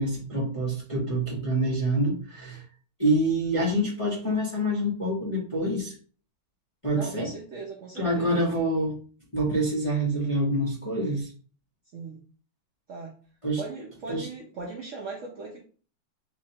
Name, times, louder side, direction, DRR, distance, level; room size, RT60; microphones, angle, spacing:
voice 1, 0.0-2.6 3.0-5.9 6.8-7.3 8.0-8.9 9.3-11.3 13.4-13.6 14.1-14.3, right 1 dB, 25° left, -6 dB, 0.6 m, -26 dB
voice 2, 6.9-8.4 11.9-12.2 12.9-13.1 13.6-15.6, right 3 dB, 85° right, -2 dB, 0.6 m, -39 dB
3.9 x 3.1 x 2.8 m, 0.40 s
omnidirectional pair, 2.2 m